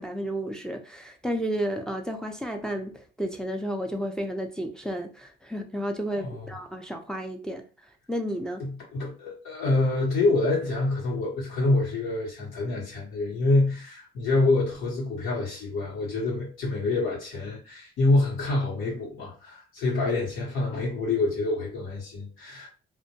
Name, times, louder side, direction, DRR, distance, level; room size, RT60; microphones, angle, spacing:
voice 1, 0.0-7.6 8.1-8.6, equal, 5° left, 0.4 m, -32 dB
voice 2, 6.1-6.5 8.6-22.7, left 2 dB, 85° left, 0.9 m, -26 dB
2.2 x 2.1 x 2.7 m
cardioid pair, 90°, 20 cm